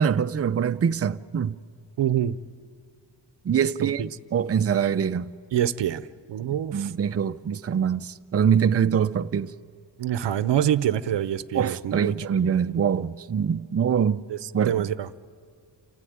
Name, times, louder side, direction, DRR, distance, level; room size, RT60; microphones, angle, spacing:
voice 1, 0.0-1.6 3.4-4.0 4.3-5.3 6.7-9.5 11.5-14.2 14.5-14.7, right 7 dB, 35° right, 0.5 m, -24 dB
voice 2, 2.0-2.4 3.8-4.1 5.5-6.9 10.0-12.1 14.3-15.1, right 10 dB, 70° right, 0.7 m, -26 dB
29.0 x 13.5 x 9.4 m
wide cardioid pair, 115°, 44 cm